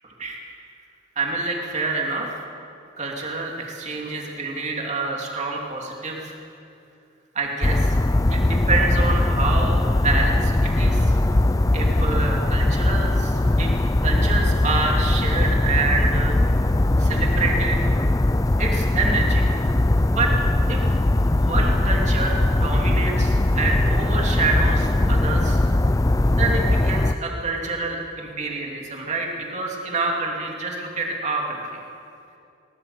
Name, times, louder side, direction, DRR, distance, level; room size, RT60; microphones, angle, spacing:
voice 1, 0.0-0.4 1.2-2.3 3.0-6.3 7.3-8.0 8.3-11.2 11.7-13.7 14.0-16.4 17.0-17.8 18.6-19.5 20.1-20.3 20.7-20.8 21.4-25.6 26.3-31.6, right 3 dB, 35° right, 0 dB, 2.9 m, -27 dB
sound 1, 7.6-27.2, left 1 dB, 20° left, 0.5 m, -20 dB
21.0 x 19.0 x 7.0 m, 2.6 s
head